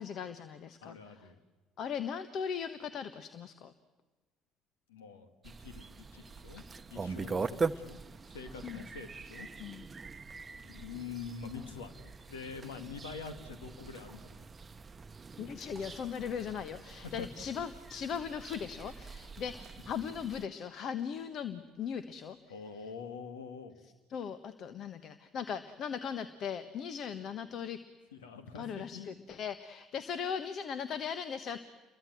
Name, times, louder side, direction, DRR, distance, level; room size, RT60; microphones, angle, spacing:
voice 1, 0.0-1.0 1.8-3.7 7.2-7.4 8.6-8.8 9.6-9.8 15.4-22.4 24.1-27.8 28.5-31.6, left 7 dB, 50° left, 11 dB, 1.3 m, -38 dB
voice 2, 0.8-1.4 4.9-6.6 6.9-8.0 8.3-9.5 10.6-14.4 17.0-17.3 22.5-23.8 28.1-29.1, left 5 dB, 80° left, 8 dB, 2.2 m, -45 dB
sound 1, 5.4-20.5, right 4 dB, 30° right, 0.9 m, -42 dB
30.0 x 23.0 x 8.0 m, 1.3 s
hypercardioid pair, 55°, 0 cm